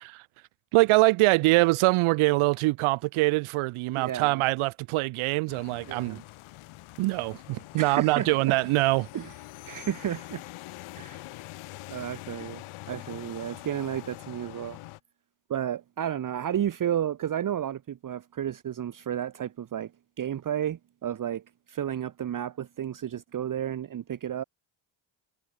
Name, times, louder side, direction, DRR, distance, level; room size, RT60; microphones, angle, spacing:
voice 1, 0.7-6.2 7.0-9.1, right 22 dB, 85° right, 0.9 m, -24 dB
voice 2, 4.0-4.4 5.9-6.2 7.8-8.5 9.1-9.3 9.6-10.4 11.0-11.2 11.9-12.6 12.9-14.8 15.5-19.9 20.2-24.4, right 10 dB, 40° right, 1.2 m, -32 dB
sound 1, 5.5-15.0, left 19 dB, 90° left, 4.0 m, -44 dB
cardioid pair, 105°, 48 cm